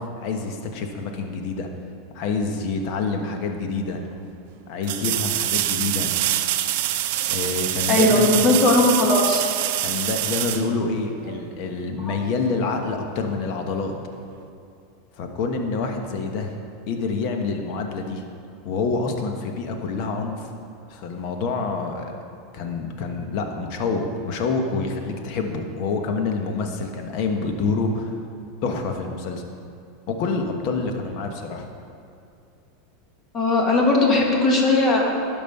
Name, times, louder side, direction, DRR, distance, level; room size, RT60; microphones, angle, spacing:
voice 1, 0.0-1.7 2.1-4.0 4.7-6.1 7.3-8.7 9.8-13.9 15.2-16.6 16.9-18.2 18.6-20.5 20.9-22.2 22.5-28.1 28.6-29.4 30.1-31.6, left 4 dB, 55° left, 4 dB, 1.2 m, -27 dB
sound 1, 3.5-3.6 4.8-11.4 14.3-14.4, right 13 dB, 65° right, 0.5 m, -25 dB
voice 2, 7.9-9.5 12.1-12.2 33.3-35.1, left 2 dB, 30° left, -1 dB, 1.8 m, -18 dB
12.0 x 5.4 x 5.5 m, 2.5 s
supercardioid pair, 115°, 0 cm